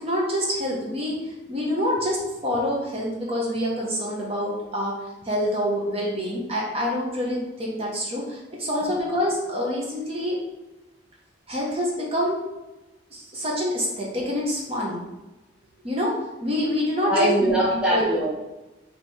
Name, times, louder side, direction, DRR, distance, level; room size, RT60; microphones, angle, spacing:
voice 1, 0.0-4.9 5.2-10.4 11.5-12.4 13.1-15.0 15.8-17.5 17.9-18.1, equal, 30° right, -3 dB, 1.0 m, -26 dB
voice 2, 17.0-18.3, right 1 dB, 5° right, -8 dB, 0.9 m, -22 dB
4.8 x 3.0 x 3.5 m, 1.1 s
head